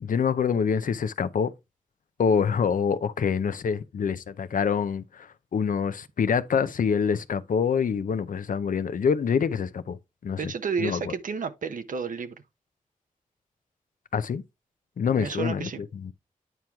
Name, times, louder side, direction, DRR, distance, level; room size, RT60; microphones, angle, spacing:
voice 1, 0.0-1.5 2.2-5.3 5.5-10.0 10.2-10.5 10.8-11.1 14.1-14.4 15.0-16.1, left 6 dB, 85° left, 0.6 m, -26 dB
voice 2, 10.4-12.3 15.2-15.8, right 5 dB, 85° right, 0.7 m, -31 dB
9.1 x 4.5 x 3.5 m
wide cardioid pair, 95°, 14 cm